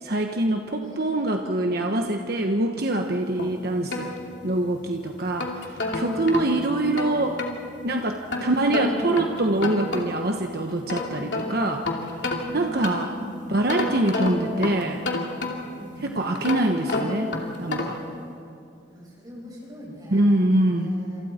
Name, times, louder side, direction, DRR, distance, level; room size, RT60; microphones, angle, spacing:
voice 1, 0.0-4.1 4.4-7.4 7.8-12.1 12.5-13.1 13.5-15.0 16.0-18.0 20.1-20.9, right 1 dB, 55° right, 3 dB, 1.2 m, -24 dB
voice 2, 0.8-1.3 6.3-6.8 8.3-9.1 12.4-13.4 15.7-16.1 18.9-21.2, equal, 20° right, -3 dB, 6.0 m, -40 dB
sound 1, 3.4-4.7 5.2-7.6 8.3-10.3 10.7-13.2 13.7-15.9 16.4-18.1, left 2 dB, 70° left, 2.9 m, -30 dB
28.5 x 27.5 x 4.4 m, 2.5 s
head